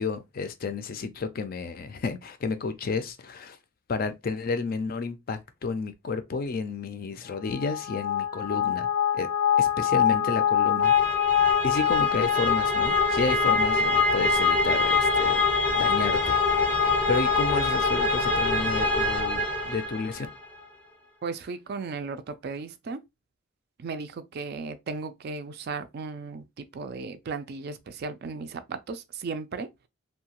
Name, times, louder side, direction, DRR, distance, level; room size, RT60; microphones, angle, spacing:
voice 1, 0.0-3.6 3.9-8.9 9.1-9.3 9.6-10.9 11.6-15.4 15.7-16.8 17.1-20.3, left 4 dB, 45° left, 0.4 m, -31 dB
sound 1, 7.5-20.3, left 5 dB, 5° left, 0.6 m, -24 dB
voice 2, 21.2-23.0 23.8-26.4 26.7-29.7, right 4 dB, 50° right, 0.3 m, -35 dB
2.8 x 2.2 x 2.8 m
head